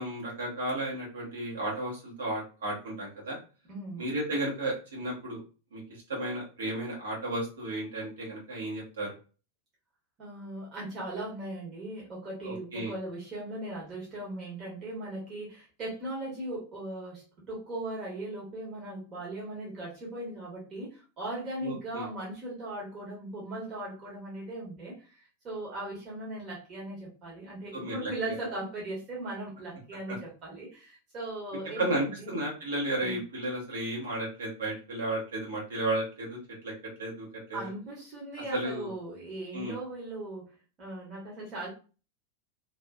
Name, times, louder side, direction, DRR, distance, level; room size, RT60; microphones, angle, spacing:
voice 1, 0.0-3.4 4.0-5.4 5.7-9.1 12.4-12.9 21.6-22.1 27.7-28.1 31.8-36.4 36.6-36.7 37.0-37.7 38.5-38.9 39.5-39.8, right 1 dB, 65° right, -3 dB, 1.2 m, -33 dB
voice 2, 3.7-4.1 10.2-32.4 33.0-33.2 37.5-41.7, right 1 dB, 30° right, -4 dB, 1.1 m, -38 dB
2.7 x 2.5 x 2.3 m, 0.33 s
figure-of-eight pair, 90°, 0 cm